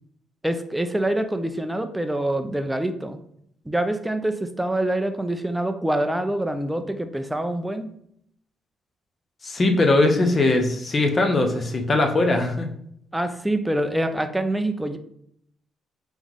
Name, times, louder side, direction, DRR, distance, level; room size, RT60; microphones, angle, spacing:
voice 1, 0.4-3.2 3.7-7.9 13.1-15.0, right 1 dB, 5° right, 8 dB, 0.4 m, -25 dB
voice 2, 9.4-12.7, left 2 dB, 35° left, 4 dB, 0.6 m, -20 dB
3.6 x 3.0 x 3.6 m, 0.70 s
cardioid pair, 90°, 0 cm